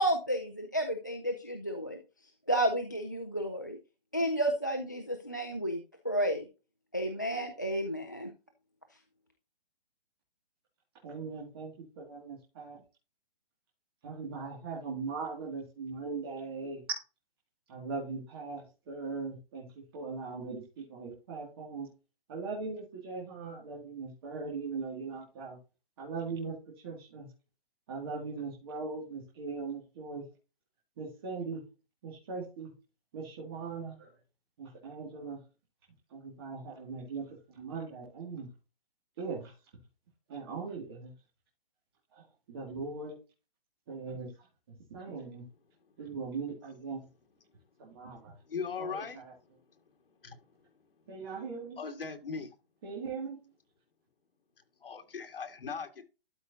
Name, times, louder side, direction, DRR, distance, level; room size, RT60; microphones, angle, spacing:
voice 1, 0.0-2.0 2.5-3.8 4.1-6.5 6.9-8.3, right 1 dB, 20° left, 7 dB, 0.4 m, -31 dB
voice 2, 11.0-11.7 12.0-12.8 14.0-16.8 17.7-19.7 19.9-20.6 20.9-21.9 22.3-25.6 26.0-26.6 26.8-27.3 27.9-30.2 31.0-31.6 32.0-32.7 33.1-34.1 34.6-35.4 36.1-38.5 39.2-39.5 40.3-41.1 42.5-43.2 43.9-44.3 44.9-45.4 46.0-47.0 47.8-48.3 48.8-49.3 51.1-51.8 52.8-53.4, right 4 dB, 25° right, -3 dB, 2.2 m, -39 dB
voice 3, 48.5-49.2 50.2-50.4 51.8-52.5 54.8-56.0, left 5 dB, 70° left, 5 dB, 1.9 m, -38 dB
12.5 x 4.9 x 2.7 m, 0.30 s
hypercardioid pair, 175°, 29 cm